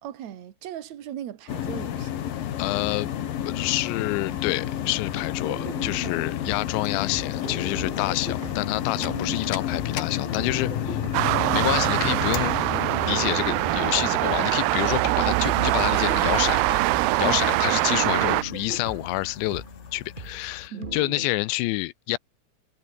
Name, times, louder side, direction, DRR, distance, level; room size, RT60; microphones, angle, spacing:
voice 1, 0.0-2.2 6.0-6.4 8.9-9.6 17.2-17.4 20.7-21.0, right 10 dB, 55° right, 2.4 m, -38 dB
sound 1, 1.5-20.7, left 10 dB, 60° left, 3.2 m, -32 dB
voice 2, 2.6-11.0 11.5-12.6 13.0-16.8 17.2-19.6 19.9-22.2, left 20 dB, 85° left, 3.0 m, -28 dB
sound 2, 5.4-9.4 9.7-21.3, right 2 dB, 20° right, 1.5 m, -40 dB
sound 3, 11.1-18.4, right 19 dB, 80° right, 2.6 m, -23 dB
omnidirectional pair, 5.1 m